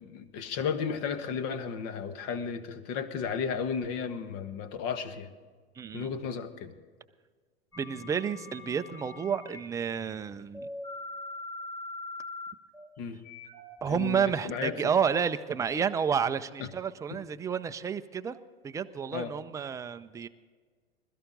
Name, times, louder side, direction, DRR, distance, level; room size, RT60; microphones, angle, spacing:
voice 1, 0.0-5.3 5.9-6.7 13.0-13.2 13.9-14.7 19.1-19.3, left 6 dB, 40° left, 11 dB, 1.4 m, -34 dB
voice 2, 5.8-6.1 7.8-10.7 13.8-18.4 18.6-20.3, right 7 dB, 10° right, 10 dB, 0.5 m, -30 dB
sound 1, 7.7-9.6 10.5-14.6, left 2 dB, 10° left, 2.8 m, -42 dB
21.0 x 13.5 x 3.9 m, 1.5 s
figure-of-eight pair, 95°, 32 cm